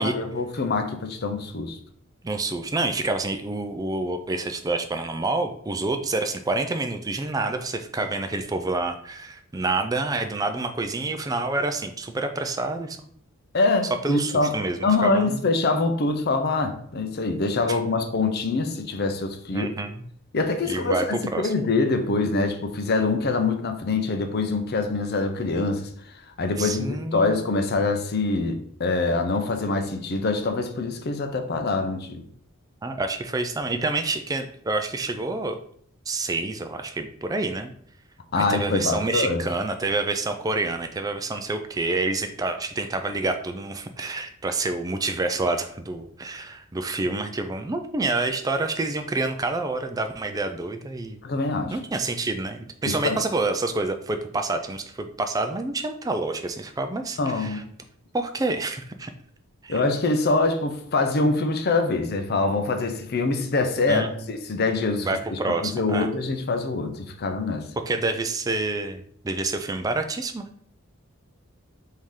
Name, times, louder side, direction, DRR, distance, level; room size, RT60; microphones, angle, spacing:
voice 1, 0.0-1.8 13.5-14.5 14.8-19.7 20.3-25.9 26.4-32.2 38.3-39.4 51.2-51.7 52.8-53.2 57.2-57.6 59.7-67.7, left 3 dB, 45° left, 0.5 m, -24 dB
voice 2, 2.2-13.0 14.0-15.4 17.7-17.8 19.5-20.0 20.7-21.1 21.3-21.5 26.6-27.3 32.8-35.6 36.1-37.7 38.3-51.2 51.7-57.6 58.1-59.1 59.6-59.8 63.9-64.3 65.0-66.1 67.9-70.5, right 2 dB, 15° right, 0.3 m, -28 dB
3.7 x 2.8 x 4.7 m
head